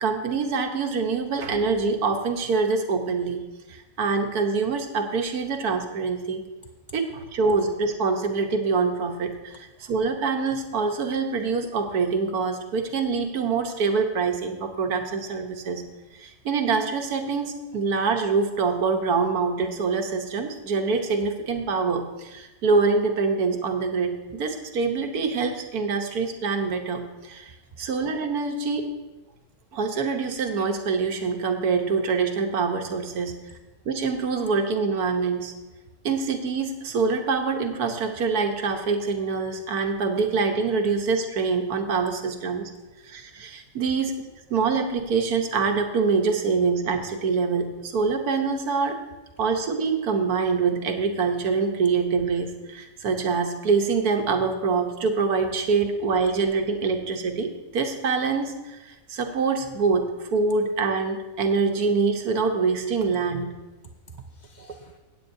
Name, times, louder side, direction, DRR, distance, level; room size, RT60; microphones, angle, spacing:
voice 1, 0.0-3.4 3.7-6.4 6.9-15.8 16.2-27.5 27.8-28.9 29.7-33.3 33.8-35.5 36.0-42.6 43.1-44.2 44.5-49.0 49.4-58.8 59.1-63.5, right 4 dB, 85° right, 5 dB, 1.5 m, -25 dB
voice 2, 9.5-9.9 27.8-27.9 63.8-65.0, right 4 dB, 65° right, 4 dB, 0.4 m, -46 dB
16.5 x 8.7 x 2.7 m, 1.1 s
omnidirectional pair, 1.6 m